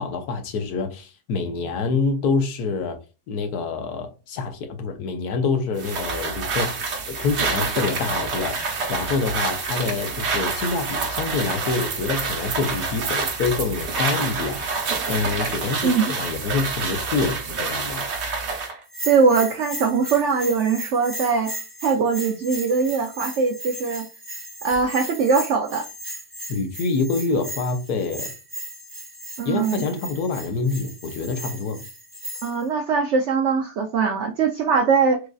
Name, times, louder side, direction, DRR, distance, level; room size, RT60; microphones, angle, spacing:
voice 1, 0.0-3.0 3.3-6.7 7.1-14.6 15.1-18.1 26.5-28.3 29.4-31.8, left 4 dB, 70° left, 1.2 m, -26 dB
sound 1, 5.8-18.8, right 4 dB, 50° right, 1.0 m, -27 dB
Bell, 18.9-32.6, right 1 dB, 20° right, 0.3 m, -36 dB
voice 2, 19.0-21.5 21.8-24.1 24.6-25.9 29.4-29.8 32.4-35.2, right 5 dB, 80° right, 0.6 m, -21 dB
6.2 x 2.5 x 2.3 m
omnidirectional pair, 1.8 m